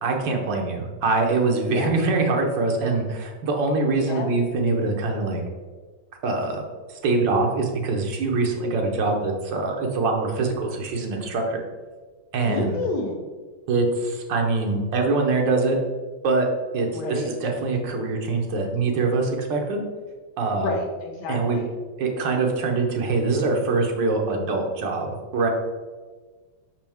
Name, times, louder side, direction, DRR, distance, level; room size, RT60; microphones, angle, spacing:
voice 1, 0.0-5.4 6.2-6.6 6.9-11.6 12.3-12.8 13.7-15.8 16.2-16.5 16.7-19.8 20.4-20.7 21.3-21.6 22.0-25.5, right 3 dB, 85° right, 2 dB, 1.6 m, -24 dB
voice 2, 12.4-13.2 16.9-17.3 20.5-21.7, left 3 dB, 70° left, 2 dB, 1.5 m, -29 dB
5.8 x 5.3 x 3.5 m, 1.4 s
omnidirectional pair, 1.9 m